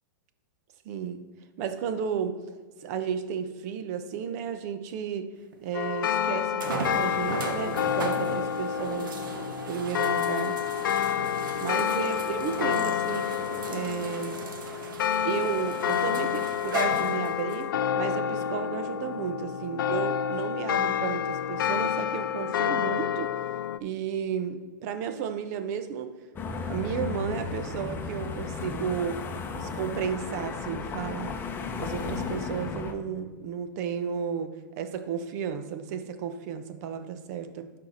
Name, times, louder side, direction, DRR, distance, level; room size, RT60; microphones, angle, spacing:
voice 1, 0.8-1.3 1.6-2.4 2.8-5.3 5.6-9.2 9.7-10.6 11.0-11.2 11.6-13.3 13.7-14.4 15.2-23.3 23.8-26.1 26.7-29.2 29.5-31.4 31.8-37.7, right 7 dB, 50° right, 10 dB, 0.9 m, -33 dB
sound 1, 5.5-5.6 6.6-17.6 18.4-18.5 21.9-22.0, right 4 dB, 80° right, 1.2 m, -37 dB
sound 2, 5.7-23.8, left 9 dB, 80° left, 0.4 m, -29 dB
sound 3, 26.4-32.9, left 5 dB, 20° left, 0.8 m, -34 dB
12.5 x 4.7 x 4.1 m, 1.4 s
hypercardioid pair, 130°, 11 cm